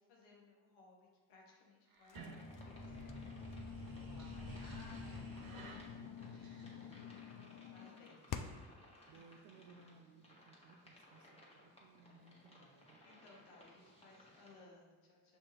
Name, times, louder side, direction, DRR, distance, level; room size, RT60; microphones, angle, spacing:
voice 1, 0.0-7.0 7.5-8.2 13.0-15.4, left 3 dB, 90° left, -2 dB, 1.0 m, -62 dB
sound 1, 1.9-7.2, right 2 dB, 50° right, 1.0 m, -51 dB
sound 2, 2.1-8.8, left 8 dB, 45° left, 0.4 m, -49 dB
sound 3, 2.3-14.6, left 1 dB, 15° left, 1.3 m, -63 dB
voice 2, 6.7-7.1 8.1-8.3 9.1-13.0 14.5-14.6, right 4 dB, 70° right, 5 dB, 0.5 m, -63 dB
5.9 x 2.6 x 3.2 m, 1.3 s
supercardioid pair, 50°, 47 cm